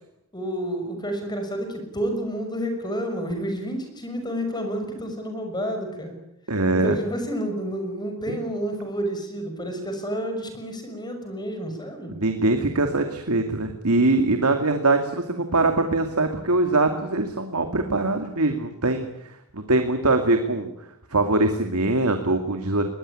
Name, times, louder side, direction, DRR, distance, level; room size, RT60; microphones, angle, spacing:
voice 1, 0.3-6.1 6.7-12.1, equal, 20° left, 6 dB, 6.0 m, -30 dB
voice 2, 6.5-7.0 12.1-20.7 21.1-22.9, right 2 dB, 80° right, 6 dB, 2.4 m, -22 dB
22.0 x 20.5 x 9.9 m, 0.81 s
head